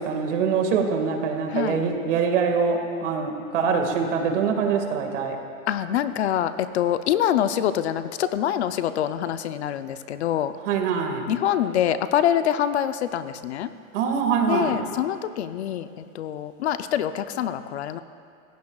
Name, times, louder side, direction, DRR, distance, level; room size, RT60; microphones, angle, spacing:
voice 1, 0.0-5.4 10.7-11.3 13.9-14.9, right 6 dB, 60° right, 3 dB, 1.9 m, -24 dB
voice 2, 1.5-1.8 5.7-10.5 11.3-13.7 14.5-18.0, left 10 dB, 55° left, 11 dB, 0.6 m, -25 dB
27.0 x 15.5 x 2.3 m, 2.3 s
supercardioid pair, 170°, 41 cm